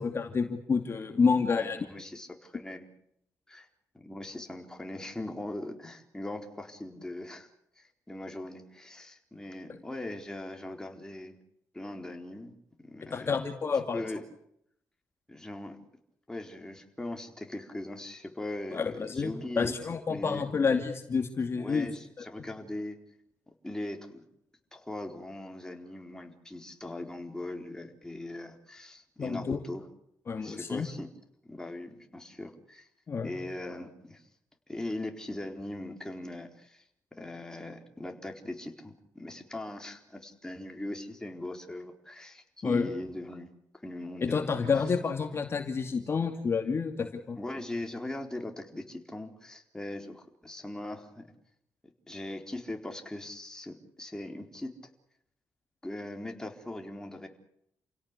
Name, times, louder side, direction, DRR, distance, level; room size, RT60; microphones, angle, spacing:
voice 1, 0.0-1.9 13.0-14.1 18.7-21.9 29.2-29.6 30.3-30.9 33.1-33.4 42.6-42.9 44.2-47.4, left 5 dB, 40° left, 5 dB, 2.5 m, -29 dB
voice 2, 1.5-2.9 3.5-3.7 3.9-7.5 7.8-11.4 11.7-12.5 12.8-13.3 13.9-14.2 15.3-15.8 16.3-19.7 20.1-20.5 21.6-23.0 23.6-24.2 24.7-29.9 30.4-31.1 31.4-32.9 33.2-34.2 34.7-36.8 37.2-43.5 43.8-44.5 47.4-51.3 52.1-54.7 55.8-57.3, left 1 dB, 10° left, 3 dB, 4.2 m, -40 dB
29.5 x 17.0 x 8.3 m, 0.73 s
cardioid pair, 110°, 6 cm